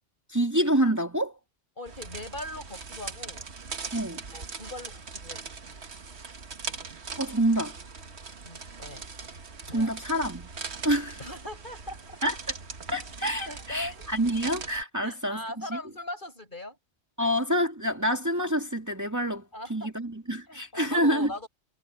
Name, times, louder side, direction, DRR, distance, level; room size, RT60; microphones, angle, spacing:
voice 1, 0.3-1.4 3.9-4.2 7.2-7.7 9.7-10.5 10.8-11.2 12.2-12.4 12.9-15.4 15.7-15.8 17.2-21.3, right 1 dB, 15° right, 2.4 m, -27 dB
voice 2, 1.8-3.4 4.3-5.4 8.4-9.0 9.7-9.9 11.2-12.2 13.5-14.1 15.0-16.8 17.2-17.4 19.5-19.9 20.5-21.5, left 1 dB, 50° left, 7.0 m, -40 dB
sound 1, 1.9-14.8, right 4 dB, 75° right, 1.7 m, -40 dB
omnidirectional pair, 1.1 m